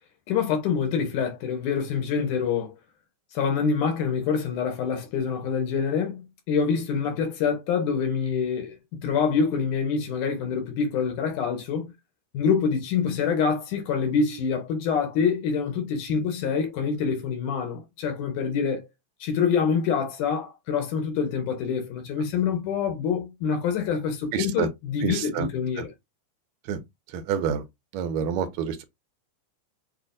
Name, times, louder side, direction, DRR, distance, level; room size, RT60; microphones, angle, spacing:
voice 1, 0.3-2.7 3.3-11.8 12.3-18.9 19.2-25.9, left 6 dB, 85° left, 2.5 m, -26 dB
voice 2, 24.3-24.7 25.0-25.5 26.7-26.8 27.1-27.6 27.9-28.8, right 8 dB, 75° right, 1.9 m, -27 dB
6.2 x 2.1 x 2.5 m
omnidirectional pair, 3.4 m